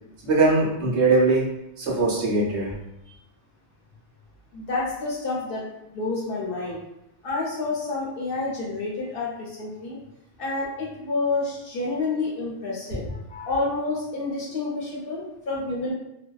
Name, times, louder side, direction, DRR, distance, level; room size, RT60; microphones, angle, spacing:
voice 1, 0.2-1.5 1.8-2.7, right 3 dB, 70° right, -4 dB, 1.0 m, -21 dB
voice 2, 4.5-5.7 5.9-6.8 7.2-10.0 10.4-15.9, left 3 dB, 60° left, -4 dB, 0.7 m, -29 dB
2.6 x 2.1 x 2.2 m, 0.86 s
omnidirectional pair, 1.2 m